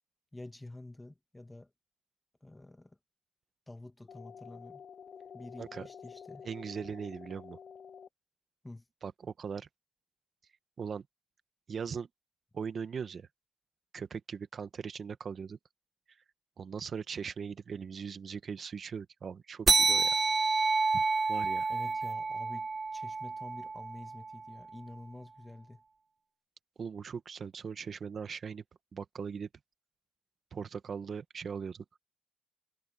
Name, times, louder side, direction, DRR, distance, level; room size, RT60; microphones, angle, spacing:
voice 1, 0.3-1.7 2.4-3.0 3.7-4.8 5.3-6.5 8.6-8.8 21.7-25.8, left 2 dB, 10° left, 1.8 m, -48 dB
sound 1, 4.1-8.1, left 7 dB, 50° left, 0.6 m, -49 dB
voice 2, 6.4-7.6 9.0-9.7 10.8-11.0 11.7-12.1 12.5-13.3 13.9-15.6 16.6-20.2 20.9-21.0 21.3-21.7 26.8-28.6 28.9-29.5 30.5-31.8, right 6 dB, 45° right, 1.4 m, -39 dB
sound 2, 19.7-24.6, right 4 dB, 30° right, 0.4 m, -29 dB
cardioid pair, 90°, 0 cm